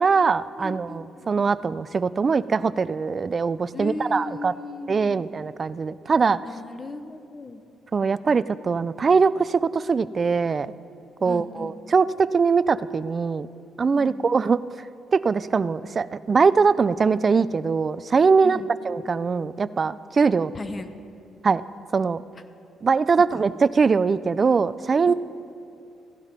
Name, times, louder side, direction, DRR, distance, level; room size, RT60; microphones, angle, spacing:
voice 1, 0.0-4.5 4.9-6.4 7.9-10.7 11.2-13.5 13.8-14.6 15.1-18.6 18.9-20.5 21.4-21.6 21.9-22.2 22.8-25.1, right 5 dB, 40° right, 17 dB, 0.4 m, -22 dB
voice 2, 0.6-1.3 3.7-5.2 6.4-7.6 11.2-11.8 13.9-14.3 18.4-18.7 20.5-20.9 23.3-23.4 25.1-25.2, left 3 dB, 30° left, 10 dB, 0.9 m, -36 dB
16.0 x 11.5 x 5.2 m, 2.6 s
cardioid pair, 90°, 0 cm